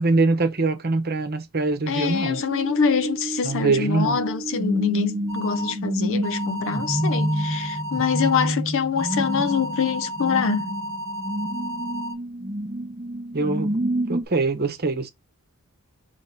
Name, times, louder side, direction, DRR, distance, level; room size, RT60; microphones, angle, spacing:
voice 1, 0.0-2.4 3.4-4.2 13.3-15.1, right 3 dB, 45° right, 0.9 m, -23 dB
voice 2, 1.9-10.7, left 6 dB, 60° left, 0.5 m, -25 dB
sound 1, 2.1-14.2, right 1 dB, 20° right, 0.6 m, -28 dB
sound 2, 5.3-5.7 6.2-8.5 9.0-12.1, right 1 dB, 5° left, 1.3 m, -33 dB
3.5 x 3.3 x 4.1 m
head